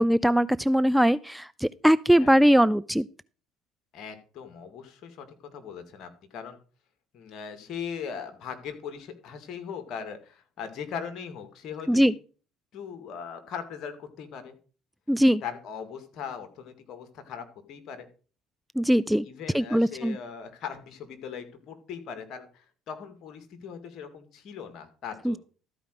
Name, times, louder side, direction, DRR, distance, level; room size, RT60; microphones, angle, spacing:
voice 1, 0.0-3.0 11.9-12.1 15.1-15.4 18.8-19.3 19.5-20.2 25.3-25.4, equal, 5° right, 16 dB, 0.4 m, -21 dB
voice 2, 3.9-5.3 5.5-6.6 7.1-12.1 12.7-14.6 15.4-18.1 19.2-25.4, left 7 dB, 60° left, 8 dB, 2.2 m, -39 dB
13.5 x 5.0 x 6.4 m, 0.38 s
hypercardioid pair, 65°, 0 cm